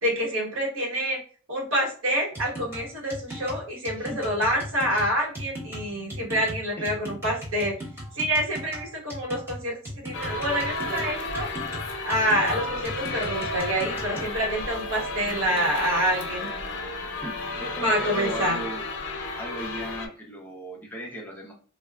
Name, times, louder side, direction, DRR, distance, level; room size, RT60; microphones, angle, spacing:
voice 1, 0.0-1.2 1.5-7.7 8.1-9.8 10.0-11.5 12.0-16.5 17.8-18.6, equal, 65° right, -2 dB, 1.2 m, -27 dB
sound 1, 2.3-14.3, equal, 10° right, 1.0 m, -38 dB
sound 2, 10.1-20.1, left 2 dB, 60° left, 0.6 m, -32 dB
voice 2, 17.6-18.8 19.4-21.5, right 2 dB, 10° left, -2 dB, 0.6 m, -37 dB
3.3 x 2.3 x 2.3 m, 0.39 s
head